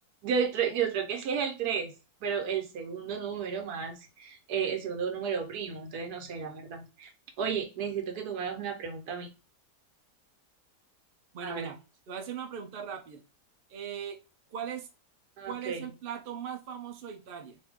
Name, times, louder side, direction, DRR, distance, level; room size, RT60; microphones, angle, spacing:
voice 1, 0.2-1.9 2.2-7.1 7.4-9.3 11.4-11.7 15.4-15.9, right 7 dB, 80° right, 1.3 m, -32 dB
voice 2, 11.3-11.8 12.1-13.2 13.7-14.2 14.5-14.9 15.4-17.6, right 8 dB, 60° right, 0.6 m, -39 dB
2.7 x 2.6 x 3.4 m
omnidirectional pair, 1.6 m